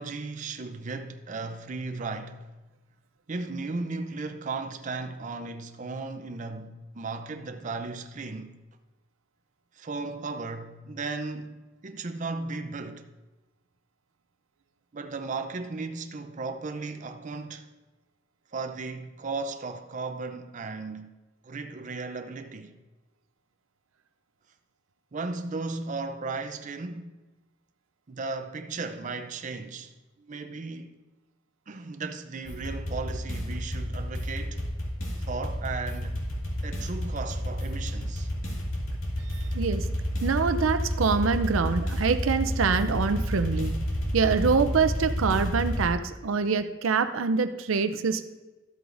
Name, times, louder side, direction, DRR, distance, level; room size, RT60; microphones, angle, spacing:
voice 1, 0.0-2.6 3.3-8.6 9.7-13.1 14.9-17.7 18.5-21.1 21.4-22.7 25.1-27.2 28.1-31.0 31.7-34.7 35.2-36.3 36.6-38.3, right 3 dB, 40° right, 0.5 m, -36 dB
sound 1, 32.5-45.9, equal, 80° left, 2.1 m, -30 dB
voice 2, 39.3-39.9 40.2-43.7 44.1-48.2, right 5 dB, 85° right, 0.5 m, -25 dB
12.5 x 7.9 x 2.6 m
head